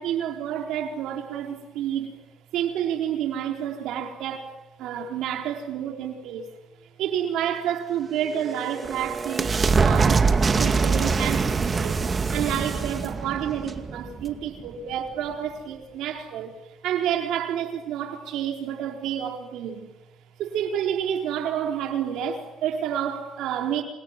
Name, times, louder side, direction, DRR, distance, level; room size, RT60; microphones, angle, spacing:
voice 1, 0.0-2.1 2.5-4.5 4.8-6.5 7.0-9.5 9.8-10.3 10.6-12.0 12.3-16.6 16.8-19.9 20.4-23.8, right 9 dB, 90° right, 4.1 m, -29 dB
sound 1, 8.2-14.7, right 4 dB, 35° right, 2.3 m, -24 dB
28.5 x 27.0 x 7.4 m
cardioid pair, 90°, 0 cm